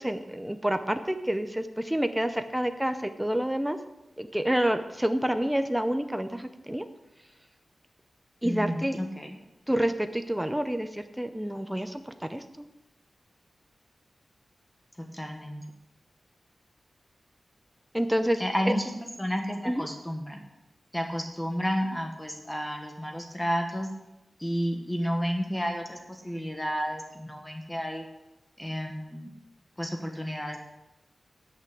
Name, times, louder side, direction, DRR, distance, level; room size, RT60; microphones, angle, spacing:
voice 1, 0.0-3.8 4.2-6.8 8.4-9.0 9.7-12.4 17.9-18.4 18.7-18.8 19.7-19.9, equal, 5° right, 8 dB, 0.6 m, -28 dB
voice 2, 8.4-9.4 15.1-15.6 18.4-18.8 19.2-20.4 20.9-23.9 24.4-28.0 28.6-29.3 29.8-30.6, equal, 10° left, 3 dB, 1.2 m, -31 dB
10.0 x 5.9 x 7.7 m, 0.96 s
wide cardioid pair, 105°, 0 cm